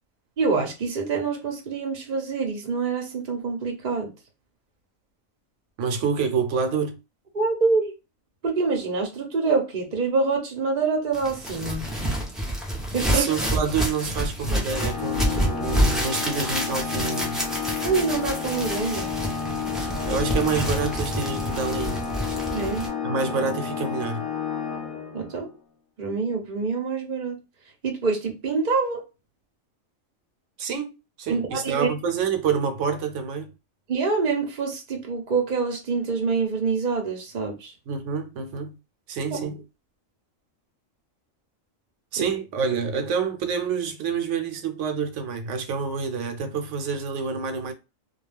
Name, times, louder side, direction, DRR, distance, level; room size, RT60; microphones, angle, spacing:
voice 1, 0.4-4.1 7.3-7.9 8.4-11.8 12.9-13.2 17.8-19.1 22.5-22.9 25.1-25.5 26.0-27.4 27.8-29.0 31.3-31.9 33.9-37.7 39.4-39.6 42.2-42.3, right 4 dB, 45° right, 0.7 m, -26 dB
voice 2, 5.8-7.0 13.0-17.4 20.1-22.1 23.0-24.3 30.6-30.9 31.2-33.5 37.9-38.8 39.1-39.6 42.1-47.7, right 5 dB, 70° right, 0.9 m, -27 dB
sound 1, 11.1-22.9, equal, ahead, 0.4 m, -28 dB
Organ, 14.7-25.5, left 6 dB, 85° left, 1.0 m, -31 dB
2.3 x 2.3 x 3.2 m
omnidirectional pair, 1.4 m